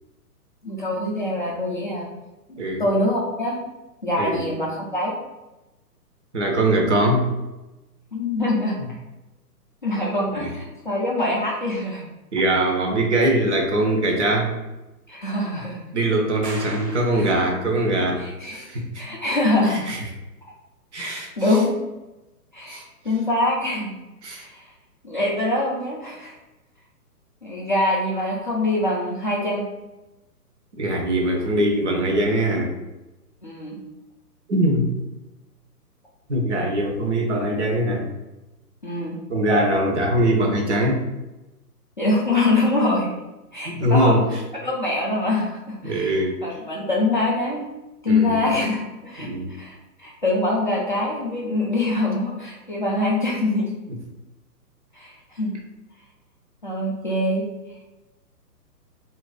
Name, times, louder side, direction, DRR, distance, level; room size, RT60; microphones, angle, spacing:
voice 1, 0.6-2.1 2.5-3.6 4.0-5.1 8.1-8.8 9.8-12.0 15.1-15.8 17.2-17.3 18.2-18.6 19.0-19.9 21.0-21.7 22.5-23.9 24.3-24.7 25.0-26.3 27.4-29.6 33.4-33.8 38.8-39.2 42.0-43.1 43.5-44.1 44.6-46.2 46.4-47.6 48.0-49.3 49.6-53.7 54.9-55.5 56.6-57.5, left 2 dB, 35° left, -5 dB, 0.4 m, -24 dB
voice 2, 6.3-7.3 10.3-10.5 12.3-14.5 15.9-18.2 18.5-19.0 19.7-20.0 20.9-21.3 22.7-22.8 24.2-24.5 30.7-32.7 34.5-34.9 36.3-38.1 39.3-41.0 43.6-44.3 45.8-46.4 48.1-48.4 49.2-49.5, right 1 dB, 45° right, 1 dB, 0.7 m, -22 dB
sound 1, 16.4-17.9, right 2 dB, 80° right, 0.9 m, -39 dB
2.5 x 2.2 x 3.7 m, 1.0 s
figure-of-eight pair, 125°, 48 cm